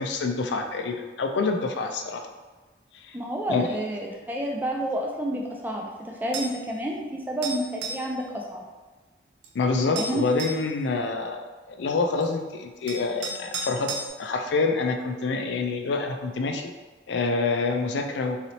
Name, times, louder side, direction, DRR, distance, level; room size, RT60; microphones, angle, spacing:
voice 1, 0.0-2.3 3.0-3.2 3.5-3.7 9.5-11.4 11.7-16.7 17.1-18.5, left 3 dB, 70° left, 5 dB, 0.4 m, -27 dB
voice 2, 3.1-8.6 10.0-10.2, right 1 dB, 10° right, -1 dB, 0.3 m, -30 dB
sound 1, 6.3-6.6 7.4-8.1 9.4-9.5 10.0-10.7 12.2-12.3 12.9-14.1, right 3 dB, 70° right, 0.5 m, -34 dB
4.0 x 3.0 x 2.7 m, 1.3 s
head